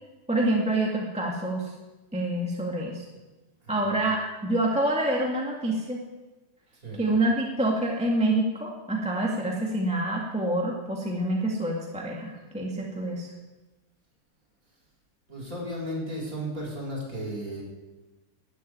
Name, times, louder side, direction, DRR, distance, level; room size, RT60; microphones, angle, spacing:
voice 1, 0.3-1.7 2.1-3.0 3.7-6.0 7.0-13.3, right 1 dB, 5° right, -2 dB, 1.9 m, -27 dB
voice 2, 3.6-4.0 6.7-7.1 15.3-17.6, equal, 35° right, -2 dB, 5.6 m, -35 dB
13.0 x 11.0 x 9.5 m, 1.2 s
omnidirectional pair, 2.4 m